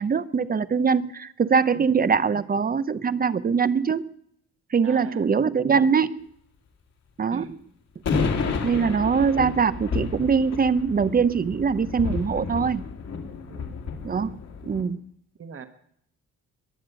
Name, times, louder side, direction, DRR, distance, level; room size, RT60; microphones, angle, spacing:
voice 1, 0.0-4.1 4.7-6.2 7.2-7.5 8.6-12.8 14.0-14.4 14.6-15.0, right 6 dB, 30° right, 16 dB, 0.8 m, -22 dB
voice 2, 4.8-5.3 7.3-7.6 8.7-9.0 13.5-13.8 15.4-15.7, right 6 dB, 45° right, 8 dB, 1.6 m, -40 dB
sound 1, 8.1-14.8, left 5 dB, 60° left, 2.8 m, -31 dB
22.0 x 7.5 x 8.1 m, 0.69 s
cardioid pair, 90°, 30 cm